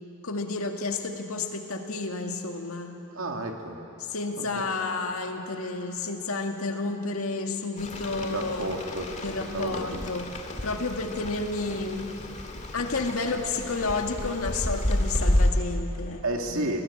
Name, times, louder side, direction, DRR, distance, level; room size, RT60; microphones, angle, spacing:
voice 1, 0.2-3.0 4.1-8.8 9.2-10.4 10.6-12.2 12.5-16.7, left 3 dB, 80° left, 4 dB, 2.0 m, -31 dB
voice 2, 3.1-3.8 4.4-4.6 8.2-9.1 9.5-10.1 16.2-16.8, right 2 dB, 75° right, 3 dB, 2.3 m, -32 dB
Rain, 7.8-15.5, left 1 dB, 35° left, 1.9 m, -30 dB
24.0 x 18.5 x 8.6 m, 3.0 s
head